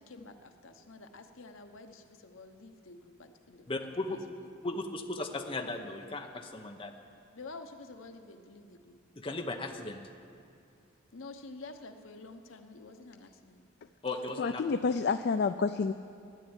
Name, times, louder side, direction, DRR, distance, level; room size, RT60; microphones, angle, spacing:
voice 1, 0.0-3.7 4.4-4.5 7.3-9.0 11.1-13.7, left 3 dB, 80° left, 6 dB, 1.0 m, -49 dB
voice 2, 3.7-4.2 4.6-6.9 9.2-10.0 14.0-14.6, left 2 dB, 25° left, 3 dB, 0.9 m, -36 dB
voice 3, 14.4-15.9, left 4 dB, 55° left, 9 dB, 0.4 m, -29 dB
12.5 x 10.0 x 9.0 m, 2.4 s
head